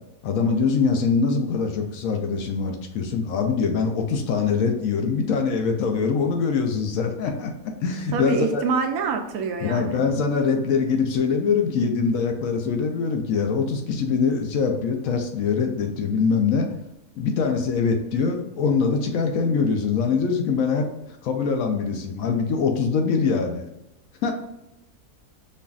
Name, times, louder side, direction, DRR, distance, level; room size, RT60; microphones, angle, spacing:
voice 1, 0.2-7.5 7.8-8.6 9.6-16.7 17.2-20.9 21.2-23.7 24.2-24.3, left 5 dB, 70° left, 3 dB, 1.0 m, -23 dB
voice 2, 8.1-10.0, right 5 dB, 75° right, 4 dB, 1.0 m, -26 dB
5.4 x 2.5 x 2.3 m, 0.89 s
omnidirectional pair, 1.6 m